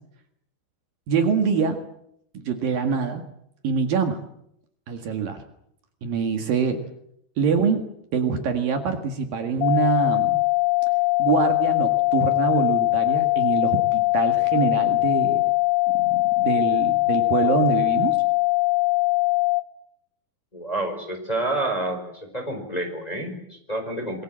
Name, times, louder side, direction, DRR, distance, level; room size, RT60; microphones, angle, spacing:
voice 1, 1.1-1.8 2.3-3.2 3.6-4.2 4.9-5.4 6.0-6.8 7.4-7.8 8.1-10.4 11.2-15.4 16.0-18.2, right 6 dB, 65° right, 5 dB, 3.4 m, -24 dB
sound 1, 9.6-19.6, left 28 dB, 70° left, 2.8 m, -21 dB
voice 2, 20.5-24.2, right 1 dB, 10° left, 4 dB, 4.3 m, -29 dB
26.0 x 23.0 x 7.6 m, 0.74 s
omnidirectional pair, 4.7 m